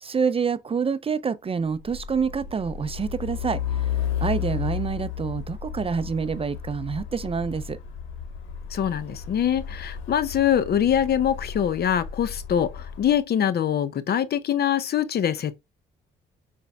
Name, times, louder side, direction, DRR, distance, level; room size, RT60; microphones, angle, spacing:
voice 1, 0.0-3.9 4.2-7.8, right 6 dB, 30° right, 0.4 m, -27 dB
Truck, 1.7-13.2, left 9 dB, 85° left, 1.1 m, -33 dB
voice 2, 8.7-15.6, left 9 dB, 55° left, 0.7 m, -24 dB
5.1 x 4.3 x 2.3 m
cardioid pair, 90°, 20 cm